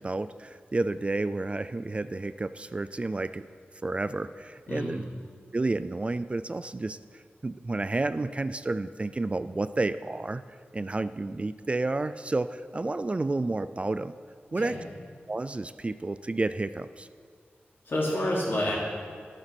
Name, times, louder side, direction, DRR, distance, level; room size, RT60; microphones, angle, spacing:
voice 1, 0.0-3.4 3.8-5.0 5.5-10.4 10.7-14.1 14.5-14.8 15.3-17.1, right 2 dB, 30° right, 13 dB, 0.3 m, -30 dB
voice 2, 4.7-5.0 14.5-14.8 17.8-18.8, left 1 dB, 65° left, -4 dB, 3.3 m, -29 dB
11.5 x 9.6 x 6.0 m, 2.1 s
wide cardioid pair, 110°, 4 cm